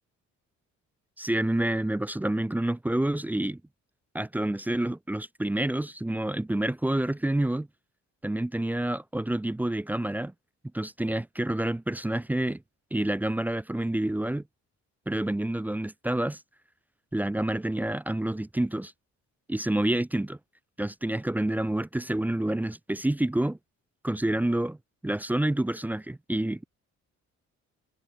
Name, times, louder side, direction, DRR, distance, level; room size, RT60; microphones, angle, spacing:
voice 1, 1.2-3.6 4.1-7.7 8.2-10.3 10.7-12.6 12.9-14.4 15.1-16.4 17.1-18.9 19.5-20.4 20.8-23.6 24.0-24.8 25.0-26.7, right 1 dB, 5° right, 0.3 m, -28 dB
cardioid pair, 90°, 30 cm